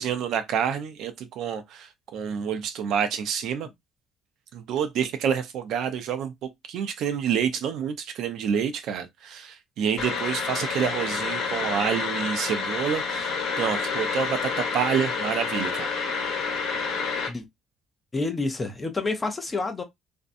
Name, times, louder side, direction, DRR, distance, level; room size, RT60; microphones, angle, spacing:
voice 1, 0.0-3.7 4.5-16.2, right 8 dB, 70° right, 0.5 m, -28 dB
sound 1, 10.0-17.3, left 5 dB, 75° left, 1.0 m, -29 dB
voice 2, 18.1-19.8, left 3 dB, 20° left, 0.5 m, -28 dB
2.5 x 2.2 x 2.5 m
cardioid pair, 140°, 0 cm